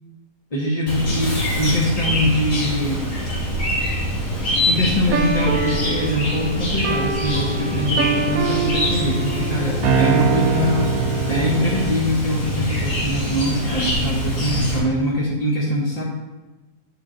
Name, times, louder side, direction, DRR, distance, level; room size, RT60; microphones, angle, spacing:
voice 1, 0.5-3.0 4.7-10.9 11.3-16.0, left 1 dB, 30° left, -5 dB, 0.7 m, -23 dB
Chirp tweet, 0.9-14.8, equal, 55° left, 1.9 m, -24 dB
sound 1, 5.1-12.1, right 6 dB, 70° right, 0.9 m, -24 dB
8.0 x 5.0 x 3.8 m, 1.1 s
omnidirectional pair, 1.8 m